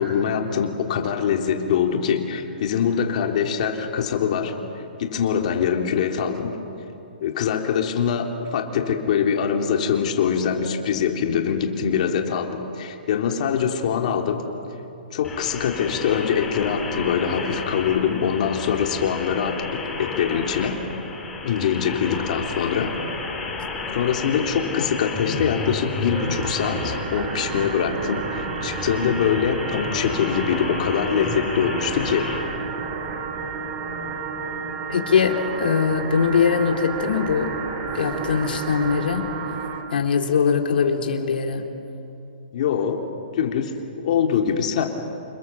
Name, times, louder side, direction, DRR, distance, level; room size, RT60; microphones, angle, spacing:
voice 1, 0.0-4.6 5.0-6.6 7.2-14.4 15.1-20.8 21.4-22.9 23.9-32.2 42.5-43.0 43.3-43.7 44.0-44.8, left 7 dB, 50° left, 3 dB, 3.4 m, -23 dB
sound 1, 15.2-32.4, left 3 dB, 5° left, 3.8 m, -32 dB
sound 2, 26.1-39.8, right 4 dB, 30° right, 3.2 m, -31 dB
voice 2, 34.9-37.6 37.9-39.3 39.9-41.6, left 6 dB, 75° left, 2 dB, 3.9 m, -21 dB
29.0 x 27.0 x 7.6 m, 2.8 s
hypercardioid pair, 165°, 5 cm